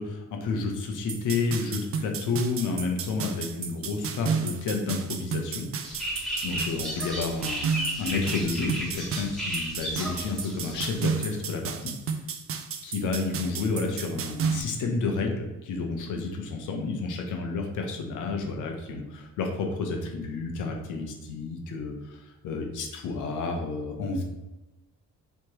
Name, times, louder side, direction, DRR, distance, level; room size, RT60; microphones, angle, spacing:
voice 1, 0.0-5.7 6.4-7.7 8.0-11.9 12.8-24.2, left 3 dB, 80° left, 2 dB, 0.9 m, -30 dB
sound 1, 1.1-14.6, right 6 dB, 50° right, 0.5 m, -32 dB
sound 2, 5.8-11.1, equal, ahead, 1.3 m, -34 dB
3.4 x 3.0 x 4.6 m, 1.1 s
cardioid pair, 90°, 30 cm